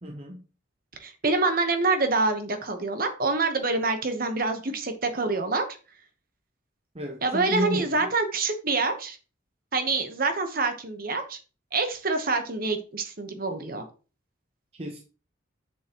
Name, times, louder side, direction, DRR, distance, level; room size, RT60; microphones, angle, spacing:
voice 1, 0.0-0.4 6.9-8.0 14.8-15.0, equal, 30° right, 0.8 m, -32 dB
voice 2, 1.0-5.7 7.2-9.2 9.7-11.4 11.7-13.9, right 3 dB, 45° right, 1.1 m, -26 dB
7.5 x 6.9 x 3.0 m
head